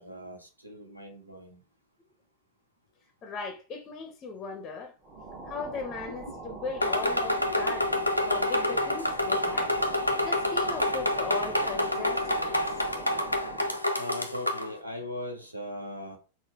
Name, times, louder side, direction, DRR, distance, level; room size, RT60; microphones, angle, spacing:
voice 1, 0.0-1.6 4.5-4.6 5.5-5.6 6.3-6.4 14.0-16.2, left 1 dB, 85° right, 0.8 m, -39 dB
voice 2, 3.2-4.9 5.5-9.7 10.2-12.6, left 4 dB, 25° left, 0.7 m, -38 dB
sound 1, 5.0-13.9, right 3 dB, 30° right, 1.1 m, -42 dB
sound 2, 6.8-14.7, left 1 dB, 90° left, 0.5 m, -28 dB
3.9 x 2.1 x 3.4 m
figure-of-eight pair, 90°, 0 cm